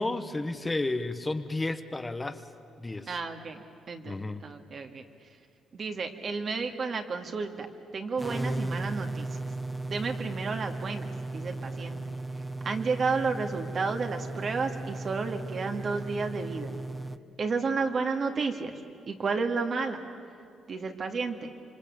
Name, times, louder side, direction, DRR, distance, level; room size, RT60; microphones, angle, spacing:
voice 1, 0.0-2.4 2.8-3.1 4.0-4.4, left 2 dB, 20° left, 8 dB, 1.2 m, -32 dB
voice 2, 3.1-4.1 4.4-5.0 5.7-7.7 7.9-9.4 9.9-11.1 11.3-12.0 12.6-16.7 17.4-18.8 19.1-20.0 20.7-21.5, right 4 dB, 50° right, 5 dB, 2.2 m, -31 dB
sound 1, 8.2-17.2, right 2 dB, 10° right, 0.8 m, -36 dB
26.5 x 24.5 x 8.6 m, 2.4 s
cardioid pair, 90°, 0 cm